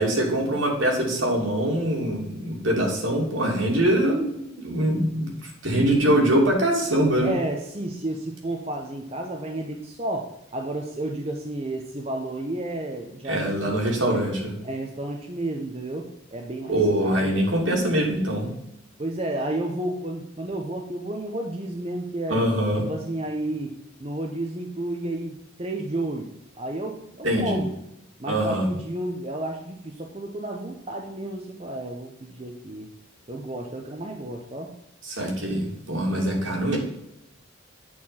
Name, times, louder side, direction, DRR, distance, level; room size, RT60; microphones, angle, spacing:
voice 1, 0.0-7.3 13.3-14.5 16.7-18.5 22.3-22.8 27.2-27.6 28.3-28.7 35.0-36.8, right 1 dB, 70° right, -1 dB, 2.7 m, -23 dB
voice 2, 7.2-13.8 14.1-14.2 14.6-17.3 19.0-22.4 22.9-23.7 24.0-26.3 26.6-27.7 28.2-32.9 33.3-34.7, right 1 dB, 30° right, 1 dB, 0.8 m, -31 dB
8.6 x 4.5 x 5.7 m, 0.82 s
head